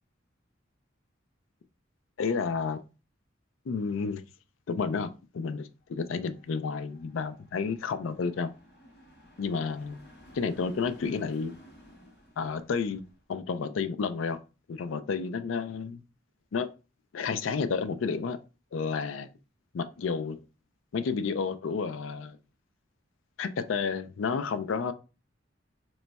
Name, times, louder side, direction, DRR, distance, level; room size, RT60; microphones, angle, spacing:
voice 1, 2.2-2.8 3.7-4.2 4.7-8.5 9.4-10.0 10.3-11.6 12.4-13.0 13.3-14.4 14.7-16.0 16.5-16.7 17.1-18.4 18.7-19.3 19.7-20.4 20.9-22.4 23.4-24.9, left 5 dB, 85° left, 0.4 m, -31 dB
sound 1, 5.8-13.2, equal, 60° left, 1.6 m, -55 dB
3.0 x 2.2 x 4.0 m
head